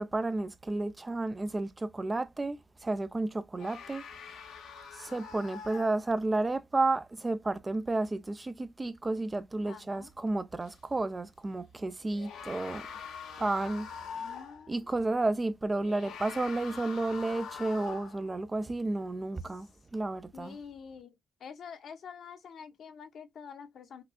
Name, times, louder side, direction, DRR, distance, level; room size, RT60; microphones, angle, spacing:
voice 1, 0.0-4.0 4.9-12.9 13.4-13.9 14.7-19.7 19.9-20.6, right 2 dB, 20° right, 0.5 m, -32 dB
sound 1, 3.6-6.4 10.6-10.7 12.0-14.7 15.8-18.3, left 6 dB, 90° left, 1.1 m, -44 dB
voice 2, 9.7-10.1 14.0-14.8 20.3-24.0, left 6 dB, 60° left, 0.9 m, -47 dB
5.8 x 2.3 x 2.3 m
cardioid pair, 90°, 0 cm